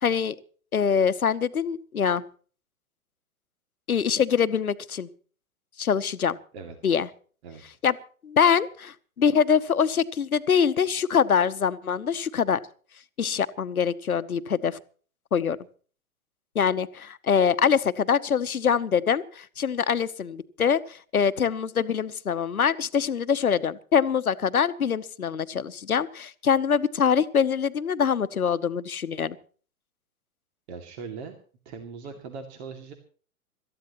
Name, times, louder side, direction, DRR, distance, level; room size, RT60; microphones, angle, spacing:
voice 1, 0.0-0.3 0.7-2.2 3.9-5.1 5.8-6.4 6.8-7.1 7.8-8.0 8.2-12.6 13.2-14.8 15.3-15.6 16.5-29.4, left 7 dB, 75° left, 14 dB, 1.1 m, -24 dB
voice 2, 6.5-7.0 7.4-7.6 30.7-31.4 31.6-32.9, right 5 dB, 45° right, 5 dB, 2.6 m, -40 dB
26.0 x 14.0 x 3.1 m, 0.43 s
figure-of-eight pair, 105°, 44 cm